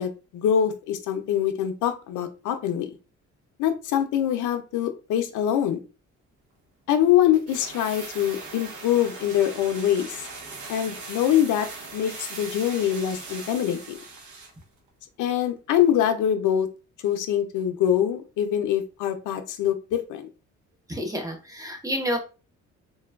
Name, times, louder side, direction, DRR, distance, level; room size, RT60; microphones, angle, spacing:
voice 1, 0.0-3.0 3.6-5.8 6.9-10.3 10.7-11.7 11.9-14.0 15.2-16.7 17.0-20.3, left 10 dB, 80° left, 6 dB, 0.5 m, -24 dB
sound 1, 7.3-14.6 14.9-15.0, right 3 dB, 75° right, 1.0 m, -40 dB
voice 2, 20.9-22.2, equal, 10° right, 3 dB, 0.8 m, -29 dB
3.2 x 2.2 x 2.2 m, 0.32 s
cardioid pair, 90°, 30 cm